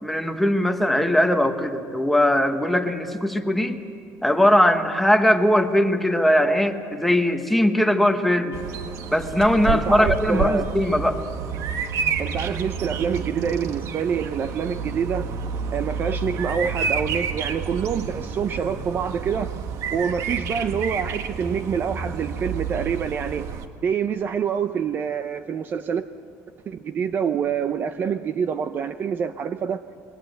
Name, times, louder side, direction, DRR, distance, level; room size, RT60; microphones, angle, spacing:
voice 1, 0.0-3.8 4.2-8.6 9.1-11.2, left 1 dB, ahead, 5 dB, 1.2 m, -20 dB
Bird vocalization bird call bird song, 8.5-23.7, right 6 dB, 55° right, 1.6 m, -29 dB
voice 2, 9.7-10.7 12.2-15.3 15.7-19.5 19.9-23.5 23.8-26.1 26.7-29.8, right 7 dB, 35° right, 11 dB, 0.6 m, -26 dB
27.5 x 22.0 x 8.0 m, 2.5 s
cardioid pair, 165°, 6 cm